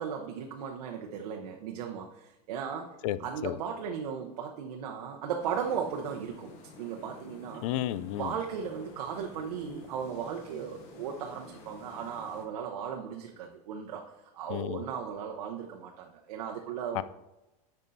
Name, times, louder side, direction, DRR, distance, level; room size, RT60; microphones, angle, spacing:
voice 1, 0.0-7.6 8.1-14.0 14.3-17.0, right 7 dB, 80° right, 2 dB, 0.8 m, -36 dB
sound 1, 5.4-12.5, left 3 dB, 40° left, 1.1 m, -51 dB
voice 2, 7.6-8.3 14.5-14.8 16.9-17.0, left 13 dB, 55° left, 16 dB, 0.4 m, -31 dB
9.4 x 5.4 x 2.6 m, 1.0 s
supercardioid pair, 155°, 20 cm